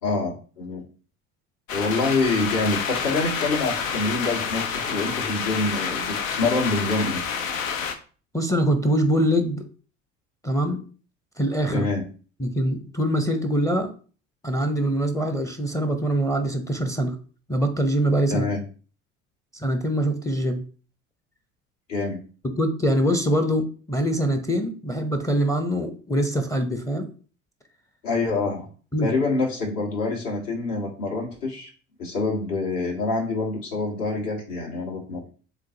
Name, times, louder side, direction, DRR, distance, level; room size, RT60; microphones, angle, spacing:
voice 1, 0.0-0.8 1.7-7.2 11.7-12.0 18.3-18.6 21.9-22.2 28.0-28.7 29.0-31.7 32.0-35.2, left 3 dB, 55° left, -3 dB, 2.4 m, -26 dB
sound 1, 1.7-7.9, left 6 dB, 75° left, 0.7 m, -28 dB
voice 2, 8.3-9.6 10.4-10.8 11.4-11.8 12.4-13.9 14.4-17.2 17.5-18.5 19.5-20.6 22.4-27.1 28.9-29.1, equal, 10° left, 6 dB, 0.7 m, -23 dB
7.3 x 2.5 x 2.8 m, 0.39 s
figure-of-eight pair, 60°, 40 cm